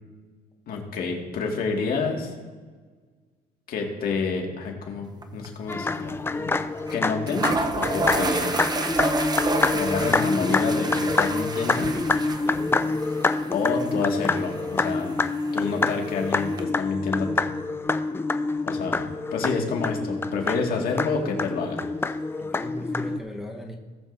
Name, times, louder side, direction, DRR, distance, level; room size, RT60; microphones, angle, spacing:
voice 1, 0.7-2.3 3.7-6.6 6.9-8.5 9.7-11.9 13.5-15.1 15.5-17.5 18.7-21.8, left 4 dB, 60° left, 1 dB, 2.0 m, -29 dB
sound 1, 5.2-5.5 5.7-5.8 6.9-7.0 7.3-16.6, right 3 dB, 25° right, 0.8 m, -31 dB
sound 2, 5.7-23.2, left 3 dB, 15° left, 0.4 m, -26 dB
voice 2, 12.4-13.0 22.4-23.8, left 1 dB, ahead, -1 dB, 1.1 m, -38 dB
18.5 x 7.7 x 2.6 m, 1.5 s
cardioid pair, 110°, 17 cm